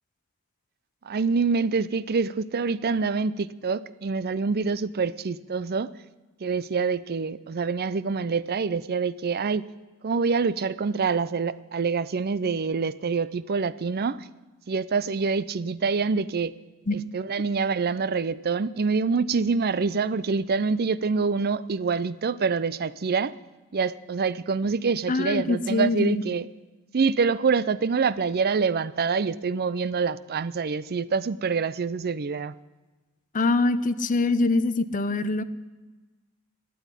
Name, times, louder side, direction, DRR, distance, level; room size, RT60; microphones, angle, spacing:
voice 1, 1.0-5.9 6.4-9.7 10.0-14.3 14.7-16.5 16.9-23.3 23.7-26.5 26.9-32.5, right 5 dB, 45° right, 17 dB, 0.5 m, -26 dB
voice 2, 25.1-26.2 33.3-35.4, left 3 dB, 35° left, 12 dB, 0.7 m, -24 dB
13.0 x 9.4 x 9.9 m, 1.2 s
head